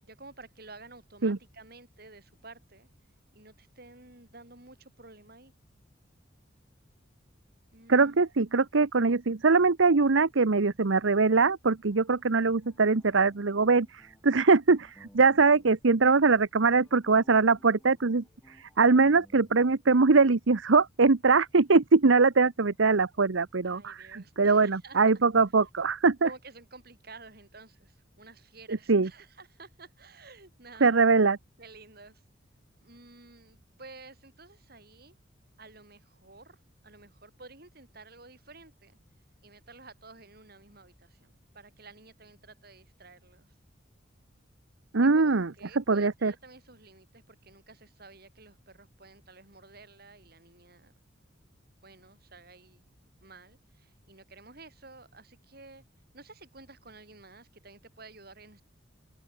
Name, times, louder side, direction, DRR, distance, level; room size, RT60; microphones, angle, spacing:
voice 1, 0.0-2.9 3.3-5.5 7.7-8.2 23.6-25.0 26.2-31.0 31.6-32.3 32.8-35.1 35.6-36.6 36.8-39.0 39.4-43.5 45.0-50.9 51.8-52.8 53.2-55.8 56.1-58.6, right 3 dB, 50° right, 7.4 m, -52 dB
voice 2, 7.9-26.3 28.7-29.1 30.8-31.4 44.9-45.5 45.7-46.3, right 4 dB, 85° right, 0.9 m, -22 dB
sound 1, 11.9-19.9, equal, 15° left, 7.7 m, -60 dB
open air
head